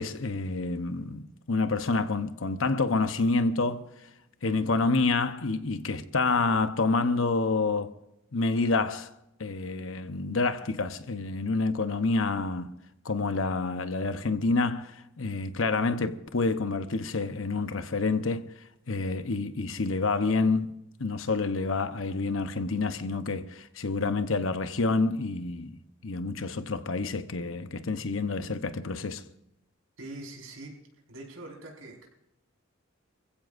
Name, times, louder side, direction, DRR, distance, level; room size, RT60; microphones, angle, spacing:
voice 1, 0.0-3.9 4.4-7.9 8.3-9.1 9.4-12.7 13.0-18.5 18.9-20.7 21.0-25.8 26.0-29.2, left 3 dB, 80° left, 0.9 m, -28 dB
voice 2, 30.0-30.7 31.1-32.1, right 2 dB, 80° right, 5.1 m, -43 dB
25.5 x 15.5 x 2.6 m
head